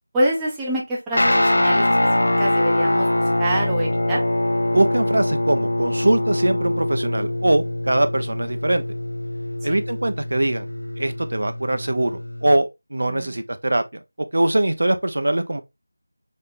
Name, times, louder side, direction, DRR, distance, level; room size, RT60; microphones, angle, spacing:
voice 1, 0.1-2.0 2.4-3.1 3.4-4.2 9.7-9.8 13.1-13.4, right 1 dB, 5° right, 0.4 m, -25 dB
Guitar, 1.1-12.6, left 1 dB, 75° left, 0.5 m, -23 dB
voice 2, 4.7-8.8 9.6-10.7 11.0-15.6, right 1 dB, 55° right, 0.6 m, -22 dB
3.7 x 3.6 x 2.5 m
figure-of-eight pair, 180°, 0 cm